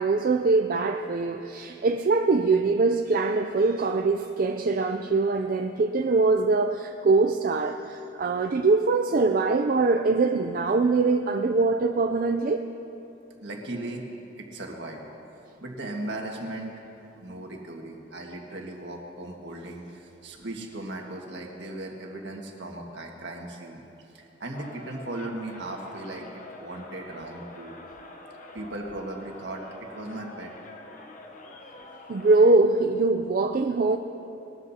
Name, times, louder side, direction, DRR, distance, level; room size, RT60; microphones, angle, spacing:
voice 1, 0.0-12.7 32.1-34.0, right 3 dB, 50° right, 5 dB, 0.4 m, -23 dB
voice 2, 13.4-14.0 14.4-15.0 15.6-16.8 17.2-23.8 24.1-27.8 28.5-30.5, right 1 dB, 70° right, 0 dB, 1.7 m, -37 dB
Crowd, 24.5-32.6, left 2 dB, 45° left, 0.9 m, -46 dB
21.0 x 14.0 x 2.8 m, 2.9 s
head